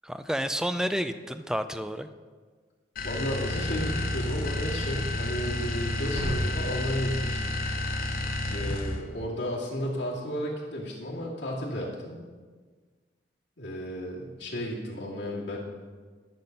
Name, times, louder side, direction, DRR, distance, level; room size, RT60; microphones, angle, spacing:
voice 1, 0.0-2.1, equal, 5° right, 10 dB, 0.4 m, -30 dB
voice 2, 3.0-7.5 8.5-12.2 13.6-15.6, equal, 80° left, -5 dB, 2.5 m, -33 dB
sound 1, 3.0-9.1, left 2 dB, 55° left, 0.9 m, -31 dB
sound 2, 6.2-8.0 8.3-8.4, equal, 65° right, 3.0 m, -36 dB
12.5 x 6.0 x 5.3 m, 1.5 s
head